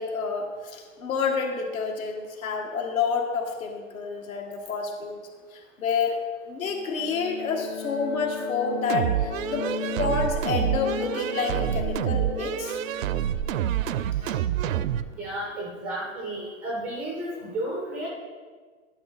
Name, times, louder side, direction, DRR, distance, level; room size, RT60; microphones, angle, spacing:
voice 1, 0.0-5.2 5.5-6.2 6.5-9.7 10.0-12.8, left 5 dB, 80° left, 2 dB, 1.8 m, -29 dB
sound 1, 6.6-15.2, left 6 dB, 60° left, 1.9 m, -37 dB
sound 2, 8.9-15.1, right 11 dB, 75° right, 0.6 m, -27 dB
voice 2, 15.1-18.1, right 1 dB, 5° right, -3 dB, 0.3 m, -32 dB
11.5 x 5.6 x 4.2 m, 1.5 s
hypercardioid pair, 140°, 41 cm